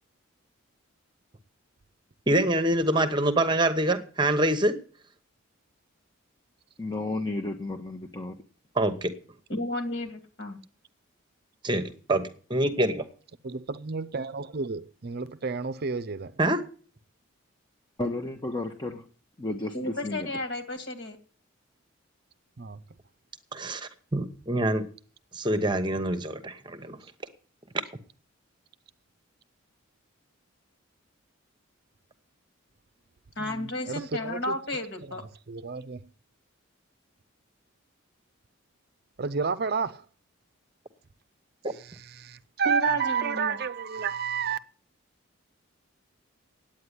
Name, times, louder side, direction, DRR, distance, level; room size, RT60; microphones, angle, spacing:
voice 1, 2.3-4.8 8.8-9.1 11.6-13.0 16.4-16.6 23.5-24.9 25.3-27.0, right 1 dB, 20° right, 1.0 m, -25 dB
voice 2, 6.8-8.4 18.0-19.0 19.4-20.3, left 2 dB, 20° left, 0.9 m, -32 dB
voice 3, 9.5-10.6 19.7-21.2 33.4-35.2 42.6-43.6, left 1 dB, 55° left, 2.5 m, -33 dB
voice 4, 13.4-16.4 22.6-22.8 33.4-34.6 35.5-36.0 39.2-40.0 41.7-44.6, right 5 dB, 50° right, 0.6 m, -31 dB
9.5 x 9.0 x 9.7 m
head